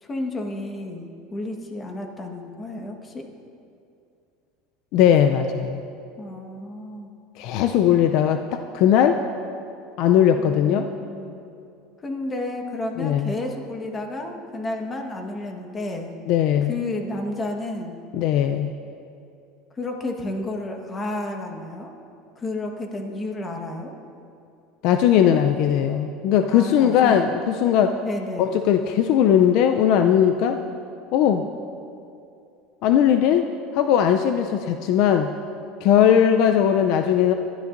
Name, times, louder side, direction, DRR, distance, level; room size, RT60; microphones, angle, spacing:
voice 1, 0.0-3.2 6.2-7.1 10.4-11.4 12.0-16.1 16.6-18.0 19.7-21.9 22.3-23.9 26.5-27.2 28.0-28.5, left 2 dB, 20° left, 3 dB, 1.4 m, -31 dB
voice 2, 4.9-5.8 7.4-9.2 10.0-10.9 13.0-13.3 16.3-16.7 18.1-18.7 24.8-28.0 28.4-30.6 31.1-31.4 32.8-33.5 33.7-35.3 35.8-37.3, left 9 dB, 60° left, 7 dB, 0.5 m, -19 dB
21.0 x 12.5 x 2.6 m, 2.5 s
supercardioid pair, 135°, 0 cm